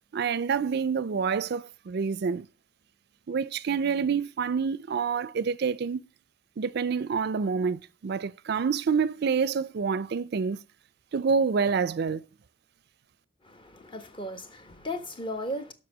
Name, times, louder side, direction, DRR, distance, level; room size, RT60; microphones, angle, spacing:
voice 1, 0.1-2.5 3.3-6.0 6.6-10.6 11.1-12.2, right 5 dB, 55° right, 0.4 m, -27 dB
voice 2, 13.4-15.7, left 1 dB, 25° left, 1.3 m, -36 dB
7.6 x 5.8 x 7.2 m
head